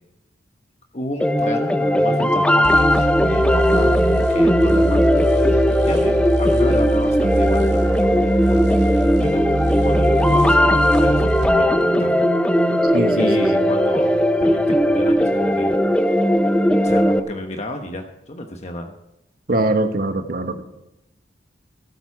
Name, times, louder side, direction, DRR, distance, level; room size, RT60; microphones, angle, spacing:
voice 1, 0.9-8.8 9.2-9.5 9.8-12.1 13.2-15.7 16.8-18.9, left 1 dB, 40° left, 4 dB, 1.1 m, -32 dB
sound 1, 1.2-17.2, equal, 5° left, 0.5 m, -18 dB
sound 2, 2.6-11.6, right 2 dB, 80° right, 2.4 m, -24 dB
voice 2, 12.9-13.7 19.5-20.6, right 2 dB, 55° right, 7 dB, 1.1 m, -22 dB
13.0 x 13.0 x 4.8 m, 0.88 s
head